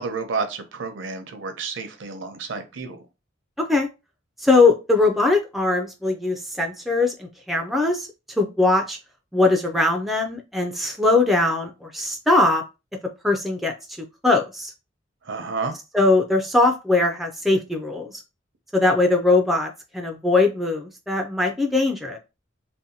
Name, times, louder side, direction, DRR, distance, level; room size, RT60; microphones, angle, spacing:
voice 1, 0.0-3.0 15.2-15.8, right 4 dB, 70° right, 6 dB, 0.6 m, -30 dB
voice 2, 3.6-3.9 4.4-8.1 8.4-9.0 9.3-12.6 13.2-13.7 14.2-14.7 15.9-18.1 18.7-22.2, left 2 dB, ahead, 3 dB, 0.3 m, -20 dB
2.7 x 2.1 x 2.7 m, 0.27 s
head